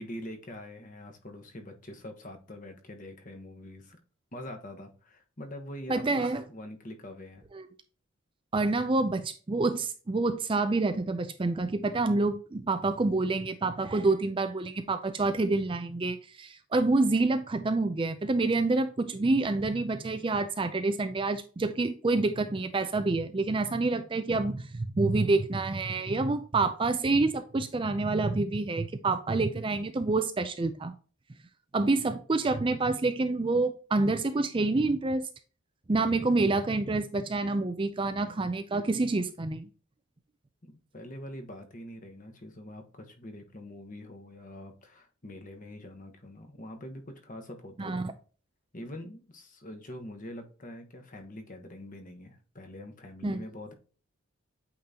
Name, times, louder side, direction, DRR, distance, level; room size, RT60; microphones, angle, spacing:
voice 1, 0.0-4.0 4.3-7.4 35.9-36.1 40.6-48.0 48.7-53.7, left 1 dB, 35° left, 1.2 m, -44 dB
voice 2, 5.9-6.4 7.5-7.7 8.5-30.9 31.7-35.3 35.9-39.7 47.8-48.1 53.2-53.4, right 3 dB, 25° right, 0.4 m, -27 dB
8.6 x 3.8 x 2.8 m
head